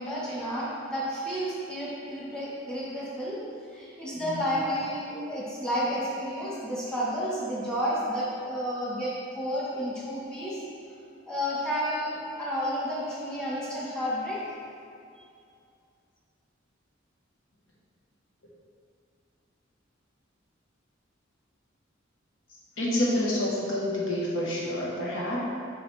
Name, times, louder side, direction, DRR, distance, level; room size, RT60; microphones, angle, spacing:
voice 1, 0.0-3.4 3.7-10.6 11.2-14.4, equal, 5° left, -8 dB, 1.5 m, -31 dB
voice 2, 22.8-25.4, left 1 dB, 70° left, -5 dB, 1.4 m, -28 dB
5.9 x 5.7 x 3.5 m, 2.4 s
head